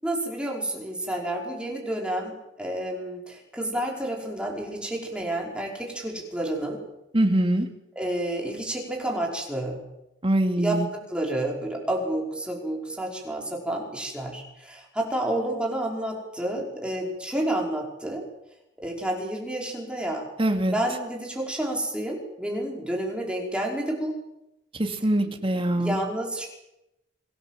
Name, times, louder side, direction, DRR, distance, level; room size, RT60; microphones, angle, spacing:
voice 1, 0.0-6.8 8.0-9.8 10.6-18.2 18.8-20.3 20.7-24.2 25.7-26.5, right 1 dB, 5° right, -1 dB, 5.3 m, -30 dB
voice 2, 7.1-7.7 10.2-10.9 20.4-20.7 24.8-26.0, right 1 dB, 30° right, 4 dB, 2.6 m, -23 dB
27.0 x 19.5 x 7.5 m, 0.89 s
head